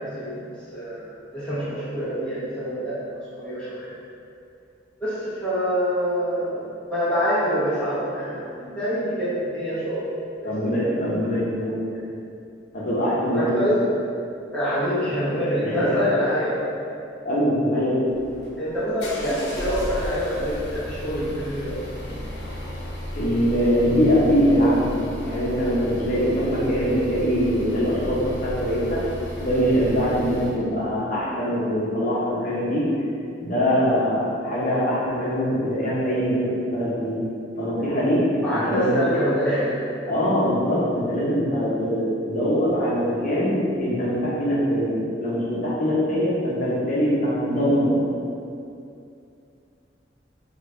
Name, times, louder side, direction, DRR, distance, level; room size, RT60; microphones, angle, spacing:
voice 1, 0.2-3.9 5.0-10.1 10.4-10.5 13.3-13.8 14.5-16.6 18.6-21.8 29.8-30.0 38.4-39.8, equal, 5° left, -13 dB, 0.9 m, -26 dB
voice 2, 10.4-11.8 12.7-13.5 15.6-16.0 17.2-18.0 23.1-24.9 25.2-29.0 29.4-32.9 33.4-37.2 37.6-38.2 38.5-38.9 40.1-47.9, equal, 50° left, -7 dB, 0.9 m, -23 dB
sound 1, 18.1-30.6, equal, 75° left, 0.6 m, -34 dB
3.2 x 2.5 x 3.2 m, 2.5 s
head